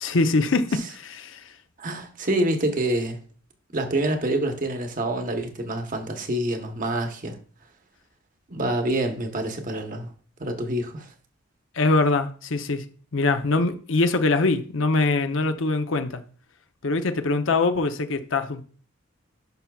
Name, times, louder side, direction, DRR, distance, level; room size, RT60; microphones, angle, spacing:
voice 1, 0.0-1.4 11.7-12.8 13.1-16.2 16.8-18.6, left 3 dB, 80° left, 0.7 m, -23 dB
voice 2, 1.8-3.2 3.7-7.4 8.5-10.1 10.4-11.1, right 1 dB, 45° right, 1.0 m, -26 dB
10.5 x 5.8 x 2.4 m
head